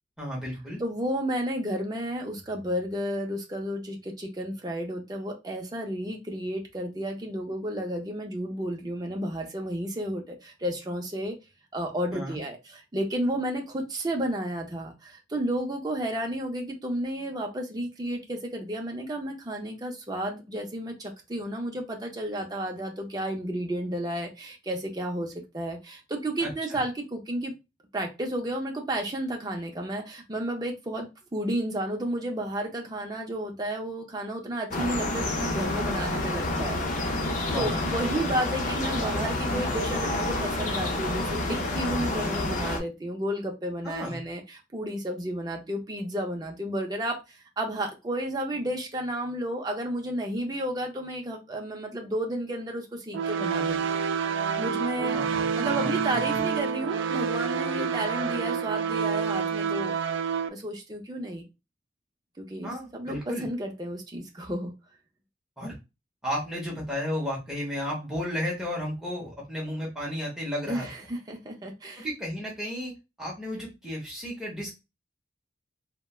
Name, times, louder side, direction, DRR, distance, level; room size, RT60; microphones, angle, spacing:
voice 1, 0.2-0.8 12.1-12.4 26.4-26.8 37.5-37.8 43.8-44.2 55.1-56.4 62.6-63.5 65.6-65.7 66.2-70.9 72.0-72.9 73.2-74.7, equal, 5° right, -4 dB, 0.9 m, -33 dB
voice 2, 0.8-11.4 11.7-27.5 27.9-54.0 54.6-55.2 55.6-59.9 60.5-61.4 62.4-64.7 70.7-72.1, right 1 dB, 20° right, 1 dB, 0.5 m, -32 dB
sound 1, 34.7-42.8, left 2 dB, 40° left, 0.5 m, -29 dB
sound 2, 53.1-60.5, right 6 dB, 75° right, 0.3 m, -28 dB
3.2 x 2.1 x 2.3 m, 0.25 s
head